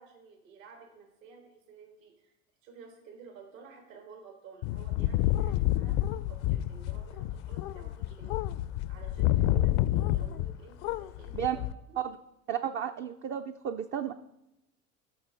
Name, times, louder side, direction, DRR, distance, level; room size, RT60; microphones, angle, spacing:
voice 1, 0.0-2.3 2.6-8.4 8.9-11.6 11.9-12.0, right 5 dB, 70° right, 4 dB, 1.4 m, -52 dB
sound 1, 4.6-10.6 10.8-11.7, left 14 dB, 55° left, 0.4 m, -29 dB
voice 2, 12.5-14.1, right 9 dB, 30° right, 7 dB, 0.4 m, -33 dB
13.0 x 4.4 x 3.9 m, 0.88 s
hypercardioid pair, 75°, 41 cm